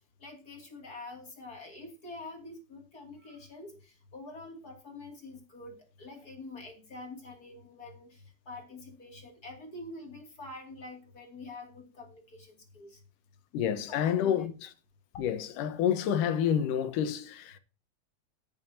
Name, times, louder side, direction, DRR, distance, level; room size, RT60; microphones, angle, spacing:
voice 1, 0.2-13.0 13.9-14.5, left 2 dB, 30° left, 2.7 m, -46 dB
voice 2, 13.5-14.7 15.1-17.6, left 9 dB, 80° left, 2.6 m, -29 dB
14.0 x 9.7 x 2.8 m
omnidirectional pair, 3.7 m